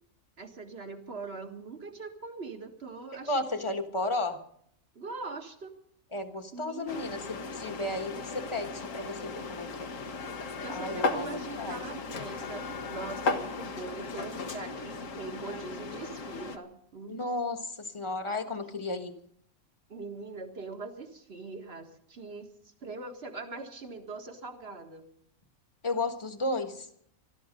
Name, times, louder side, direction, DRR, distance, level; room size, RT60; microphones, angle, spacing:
voice 1, 0.4-3.5 4.9-5.8 6.5-7.5 10.6-12.6 12.9-17.5 19.9-25.1, right 3 dB, 50° right, 5 dB, 1.9 m, -42 dB
voice 2, 3.3-4.4 6.1-9.9 10.7-11.8 17.1-19.1 25.8-26.9, left 2 dB, 20° left, 7 dB, 1.3 m, -33 dB
sound 1, 6.9-16.6, left 4 dB, 70° left, 1.6 m, -36 dB
21.5 x 12.5 x 5.2 m, 0.68 s
omnidirectional pair, 1.4 m